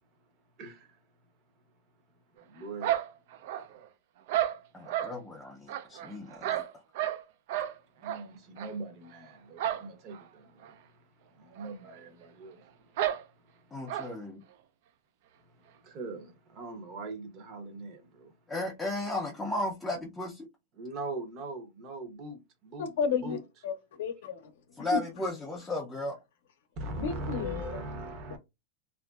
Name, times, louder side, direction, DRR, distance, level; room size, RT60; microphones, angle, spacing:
voice 1, 0.6-1.0 2.4-2.9 8.0-10.8 11.3-12.7 13.4-13.6 15.5-18.3 20.7-23.4 26.8-28.4, right 2 dB, 35° right, 0.8 m, -41 dB
sound 1, 2.8-3.9 4.3-5.1 5.7-7.2 7.5-7.7 8.0-8.2 8.6-8.7 9.6-9.9 10.1-10.2 10.6-10.7 11.6-11.7 11.9-12.0 13.0-13.2 13.9-14.1, right 12 dB, 55° right, 0.4 m, -31 dB
voice 2, 4.7-6.6 13.7-14.4 18.5-20.5 24.8-26.2, left 1 dB, 10° left, 0.4 m, -35 dB
voice 3, 22.8-24.5 24.9-25.0 27.0-27.8, left 6 dB, 75° left, 0.6 m, -32 dB
2.8 x 2.5 x 2.3 m
supercardioid pair, 165°, 0 cm